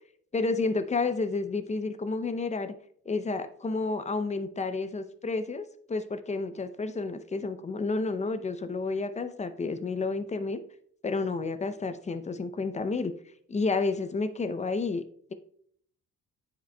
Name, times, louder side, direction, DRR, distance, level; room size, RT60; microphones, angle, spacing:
voice 1, 0.3-2.7 3.1-10.6 11.0-13.1 13.5-15.0, left 3 dB, 25° left, 11 dB, 0.5 m, -30 dB
9.1 x 5.0 x 2.2 m, 0.63 s
cardioid pair, 90°, 30 cm